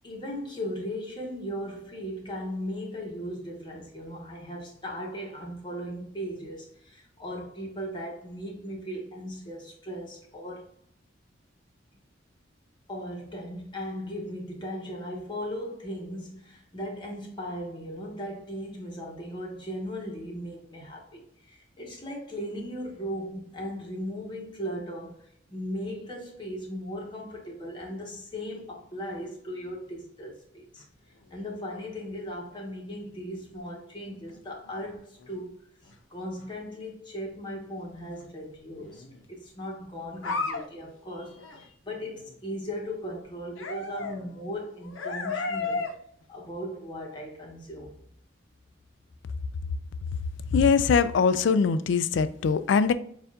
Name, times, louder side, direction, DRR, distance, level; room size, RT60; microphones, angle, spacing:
voice 1, 0.0-10.7 12.9-30.8 31.3-35.6 36.1-45.9 46.3-48.0, equal, 25° left, 1.1 m, -37 dB
sound 1, 30.8-30.9 31.2-31.3 34.1-35.3 35.9-36.0 36.4-36.5 38.7-39.2 39.6-39.7 40.1-40.6 41.0-41.1 41.3-41.7 41.9-42.4 43.6-45.9 46.2-46.3, left 3 dB, 90° left, 0.7 m, -35 dB
voice 2, 50.5-52.9, left 5 dB, 70° left, 0.3 m, -22 dB
6.8 x 2.5 x 2.4 m
head